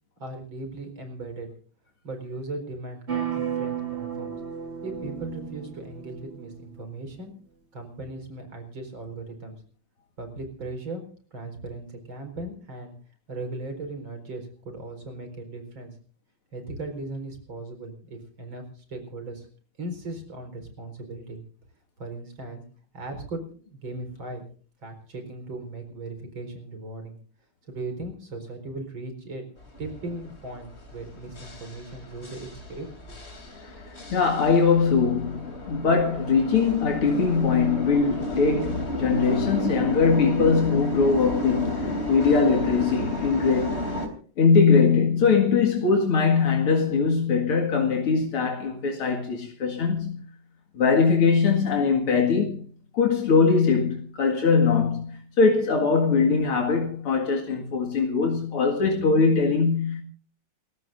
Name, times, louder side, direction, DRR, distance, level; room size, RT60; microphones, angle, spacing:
voice 1, 0.2-1.5 2.0-4.3 4.8-7.3 7.7-9.6 10.2-11.0 11.3-12.9 13.3-15.9 16.5-19.5 19.8-21.4 22.0-22.6 22.9-24.5 24.8-27.2 27.7-29.4 29.8-33.2, right 2 dB, 60° right, 5.3 m, -37 dB
sound 1, 3.1-6.9, right 8 dB, 30° right, 1.8 m, -33 dB
sound 2, 29.6-44.1, left 1 dB, 30° left, 3.4 m, -32 dB
voice 2, 34.1-43.9 44.4-50.2 50.7-52.7 52.9-60.0, left 5 dB, 80° left, 2.9 m, -21 dB
28.0 x 15.5 x 2.6 m
omnidirectional pair, 2.4 m